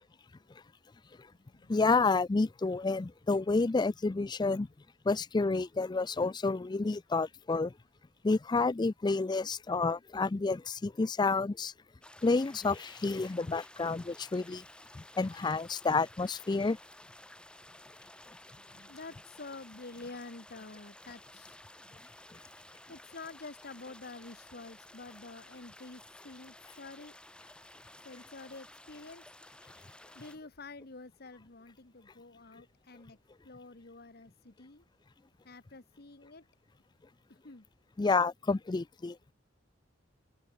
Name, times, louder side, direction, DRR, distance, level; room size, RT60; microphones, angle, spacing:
voice 1, 1.7-4.7 5.1-7.7 8.2-11.7 12.2-14.6 14.9-16.8 38.0-39.2, left 3 dB, 20° left, 0.4 m, -29 dB
sound 1, 12.0-30.4, left 1 dB, 5° left, 1.8 m, -54 dB
voice 2, 18.5-21.6 21.8-21.9 22.9-27.1 28.0-29.2 30.1-33.2 33.4-34.8 35.4-36.4 37.3-37.7, left 3 dB, 55° left, 1.4 m, -48 dB
open air
head